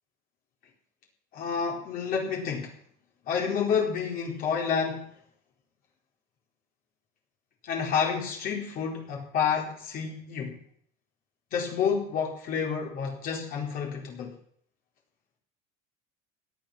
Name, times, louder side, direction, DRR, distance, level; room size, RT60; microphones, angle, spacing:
voice 1, 1.3-2.7 3.2-5.1 7.6-10.6 11.5-14.3, left 6 dB, 50° left, 0 dB, 4.3 m, -29 dB
17.5 x 11.5 x 6.0 m, 0.64 s
cardioid pair, 140°, 19 cm